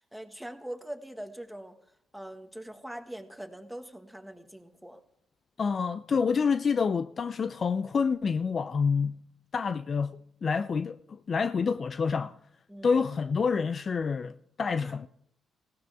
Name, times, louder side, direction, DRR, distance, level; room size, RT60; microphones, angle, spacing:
voice 1, 0.0-1.8 2.1-5.0 12.7-12.9 14.8-15.0, right 1 dB, ahead, 1.7 m, -42 dB
voice 2, 5.6-9.2 9.5-12.4 12.8-15.1, left 5 dB, 45° left, 0.4 m, -28 dB
18.5 x 16.5 x 3.5 m
cardioid pair, 90°, 0 cm